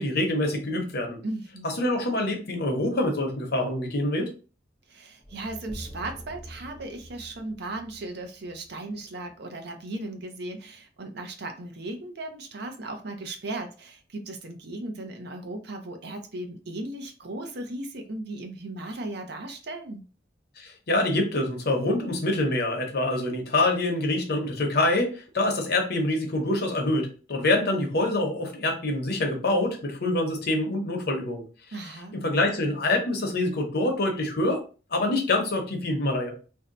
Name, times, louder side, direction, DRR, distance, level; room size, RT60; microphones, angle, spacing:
voice 1, 0.0-1.2 1.6-4.3 20.6-31.4 32.1-34.6 34.9-36.3, left 2 dB, 60° left, 3 dB, 0.8 m, -25 dB
voice 2, 1.2-1.7 4.9-20.0 31.7-32.1, right 2 dB, 60° right, 5 dB, 0.6 m, -36 dB
sound 1, 5.2-9.4, equal, 10° left, 0.5 m, -45 dB
2.7 x 2.2 x 3.8 m, 0.36 s
head